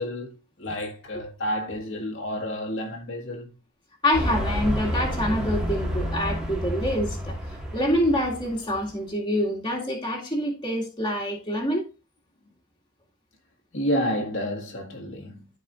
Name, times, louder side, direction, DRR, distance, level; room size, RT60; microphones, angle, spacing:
voice 1, 0.0-3.5 13.7-15.5, equal, 70° left, 1.7 m, -30 dB
voice 2, 4.0-7.4 7.7-11.9, equal, 25° left, 2.0 m, -26 dB
sound 1, 4.1-8.9, equal, 5° right, 1.7 m, -29 dB
13.0 x 4.8 x 2.5 m
head